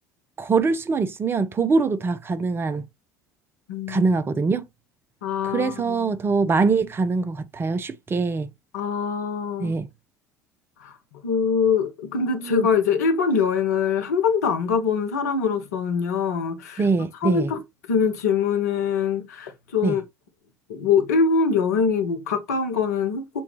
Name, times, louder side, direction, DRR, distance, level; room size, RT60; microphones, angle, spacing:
voice 1, 0.4-2.8 3.9-4.6 5.4-8.5 9.6-9.9 12.4-12.7 16.8-17.5 19.8-20.0, right 4 dB, 25° right, 0.6 m, -23 dB
voice 2, 3.7-4.0 5.2-6.1 8.7-9.7 10.8-10.9 11.2-16.9 17.2-17.6 17.9-20.0 20.7-23.4, left 6 dB, 75° left, 1.0 m, -23 dB
6.9 x 2.3 x 3.1 m
figure-of-eight pair, 65°, 9 cm